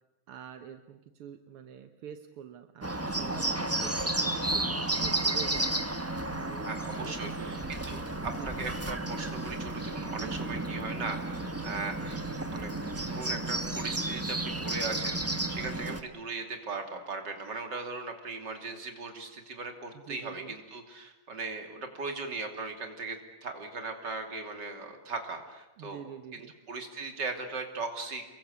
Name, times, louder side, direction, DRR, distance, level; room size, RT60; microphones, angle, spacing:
voice 1, 0.3-5.8 6.3-7.6 8.3-8.7 10.1-10.9 12.1-12.4 15.7-16.0 19.9-20.6 25.8-26.5, right 9 dB, 80° right, 8 dB, 2.0 m, -46 dB
Bird, 2.8-16.0, right 2 dB, 10° right, 0.7 m, -32 dB
voice 2, 6.7-26.0 26.3-28.2, right 3 dB, 50° right, 5 dB, 3.5 m, -38 dB
29.0 x 22.5 x 8.3 m, 1.0 s
omnidirectional pair, 2.4 m